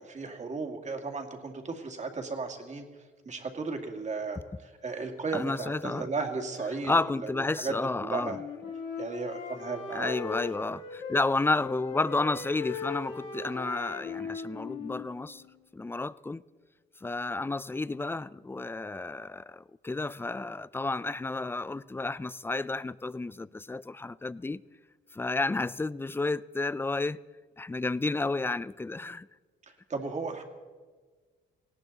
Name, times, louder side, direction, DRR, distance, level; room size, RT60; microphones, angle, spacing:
voice 1, 0.0-2.9 3.3-7.7 8.0-8.4 9.0-10.1 29.9-30.4, right 4 dB, 35° right, 2.2 m, -35 dB
voice 2, 5.3-6.1 6.9-8.4 9.9-15.4 15.7-16.4 17.0-24.6 25.1-27.2 27.6-29.3, left 3 dB, 10° left, 0.4 m, -31 dB
Wind instrument woodwind instrument, 7.7-11.3 11.6-15.6, left 6 dB, 75° left, 3.0 m, -39 dB
18.5 x 17.0 x 4.0 m
cardioid pair, 90°, 20 cm